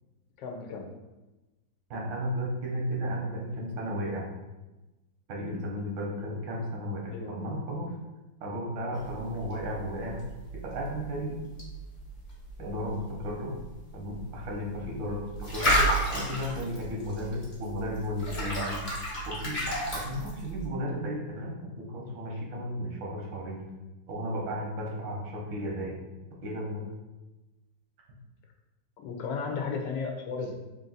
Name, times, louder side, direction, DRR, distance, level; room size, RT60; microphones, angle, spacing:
voice 1, 0.4-0.9 7.1-7.3 29.0-30.5, left 5 dB, 75° left, 2 dB, 1.3 m, -34 dB
voice 2, 1.9-4.3 5.3-8.0 8.4-10.2 10.5-11.4 12.6-13.6 13.9-15.8 16.1-18.8 19.3-19.6 19.9-23.6 24.1-26.0 26.4-26.9, equal, 85° right, -1 dB, 1.6 m, -34 dB
sound 1, 8.9-20.7, right 1 dB, 30° left, 1.1 m, -33 dB
3.8 x 2.6 x 3.9 m, 1.1 s
omnidirectional pair, 2.0 m